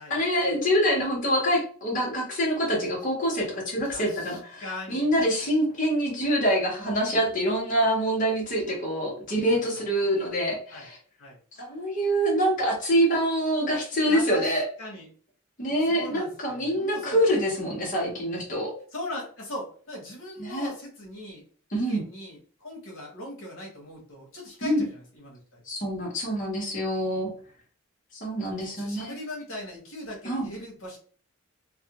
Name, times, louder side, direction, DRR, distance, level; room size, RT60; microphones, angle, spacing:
voice 1, 0.0-11.0 11.6-14.6 15.6-18.7 20.4-20.7 21.7-22.0 24.6-24.8 25.7-27.3 28.1-29.1 30.2-30.5, equal, 40° left, -3 dB, 0.9 m, -25 dB
voice 2, 3.8-5.1 9.4-9.6 10.7-10.9 11.2-11.4 14.0-15.1 15.7-17.3 18.9-21.4 21.7-25.6 28.5-31.0, left 1 dB, 75° left, -1 dB, 0.9 m, -40 dB
2.4 x 2.2 x 2.9 m, 0.43 s
head